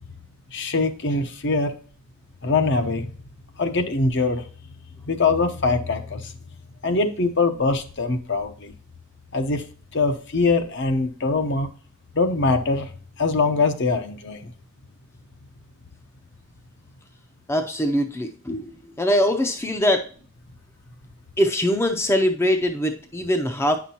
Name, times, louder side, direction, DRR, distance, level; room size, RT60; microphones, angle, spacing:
voice 1, 0.5-1.7 2.4-3.1 3.6-4.4 5.0-6.3 6.8-8.7 9.3-9.6 9.9-11.7 12.1-12.9 13.2-14.5, left 3 dB, 55° left, 7 dB, 0.8 m, -23 dB
voice 2, 17.5-20.1 21.4-23.8, equal, 10° left, 6 dB, 0.5 m, -22 dB
9.1 x 5.9 x 2.9 m, 0.42 s
head